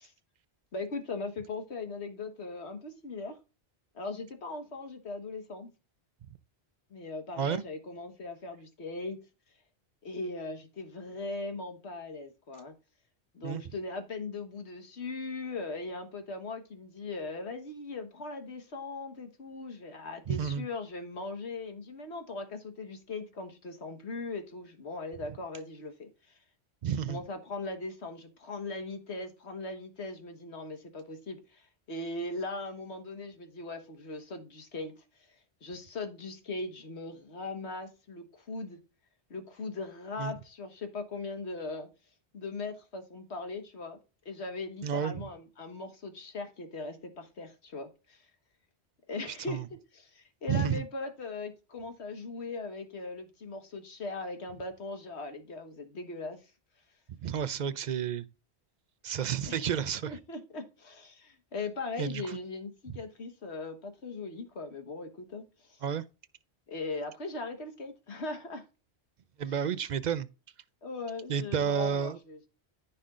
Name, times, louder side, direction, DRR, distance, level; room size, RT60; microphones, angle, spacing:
voice 1, 0.7-3.4 3.9-5.7 6.9-9.2 10.0-12.7 13.3-26.4 27.1-34.9 35.6-38.8 39.3-41.9 42.3-44.0 44.3-48.3 49.1-49.6 49.9-56.5 59.5-59.7 60.1-65.8 66.7-68.6 69.5-69.6 70.8-72.5, left 3 dB, 85° left, 1.7 m, -39 dB
voice 2, 20.3-20.7 26.8-27.2 40.2-40.3 44.8-45.2 49.5-49.7 50.5-50.8 57.2-58.3 59.0-60.2 62.0-62.2 65.8-66.0 69.4-70.3 71.3-72.2, right 8 dB, 50° right, 0.6 m, -31 dB
14.0 x 5.4 x 2.5 m
omnidirectional pair, 1.1 m